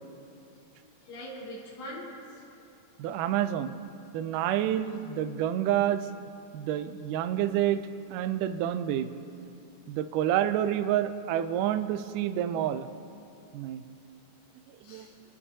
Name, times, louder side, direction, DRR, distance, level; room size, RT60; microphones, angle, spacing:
voice 1, 0.8-2.4 3.1-3.2 14.8-15.1, equal, 60° left, -7 dB, 3.8 m, -43 dB
voice 2, 3.0-3.8 4.1-6.1 6.5-7.8 8.1-9.1 9.9-12.9 13.5-13.8 14.9-15.1, right 11 dB, 80° right, 10 dB, 2.1 m, -28 dB
24.5 x 13.0 x 2.8 m, 2.6 s
omnidirectional pair, 3.8 m